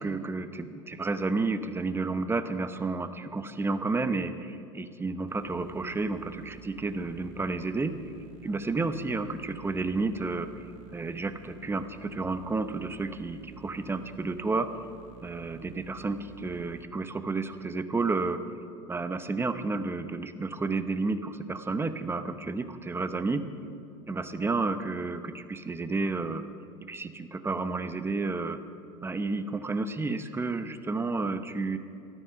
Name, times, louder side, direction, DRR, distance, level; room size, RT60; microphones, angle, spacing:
voice 1, 0.0-7.9 8.4-10.6 10.9-14.8 15.2-18.5 18.9-23.4 24.1-26.5 26.9-28.6 29.0-31.8, right 3 dB, 15° right, 10 dB, 0.9 m, -31 dB
sound 1, 5.3-16.8, right 11 dB, 60° right, 1.5 m, -51 dB
13.5 x 13.0 x 5.8 m, 2.5 s
hypercardioid pair, 90°, 16 cm